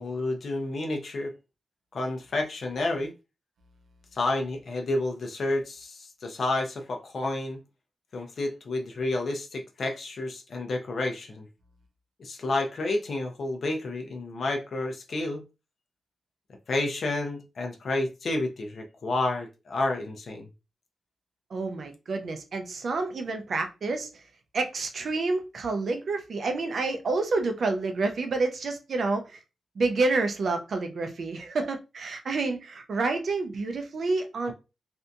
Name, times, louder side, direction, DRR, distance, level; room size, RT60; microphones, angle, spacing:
voice 1, 0.0-1.3 1.9-3.1 4.1-7.6 8.1-11.5 12.2-15.4 16.7-20.5, left 2 dB, 55° left, 0.5 m, -30 dB
voice 2, 21.5-24.1 24.5-29.4 29.8-34.5, right 3 dB, 55° right, 0.4 m, -28 dB
2.6 x 2.5 x 2.2 m
wide cardioid pair, 145°, 0 cm